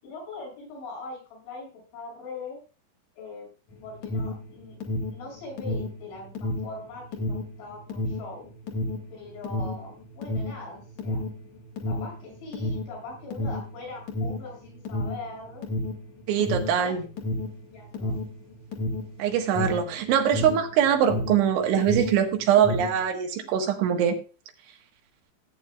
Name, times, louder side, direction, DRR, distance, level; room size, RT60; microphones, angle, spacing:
voice 1, 0.0-1.7 1.9-2.6 3.2-3.5 3.8-4.8 5.1-8.5 9.1-11.2 11.9-15.6 16.7-16.9 17.7-18.1, left 3 dB, 80° left, -3 dB, 9.2 m, -41 dB
Alarm, 3.7-21.5 21.7-23.0, left 2 dB, 50° left, 2.6 m, -31 dB
voice 2, 16.3-17.0 19.2-24.1, right 9 dB, 85° right, 4 dB, 3.9 m, -23 dB
16.5 x 9.3 x 2.4 m, 0.34 s
omnidirectional pair, 5.3 m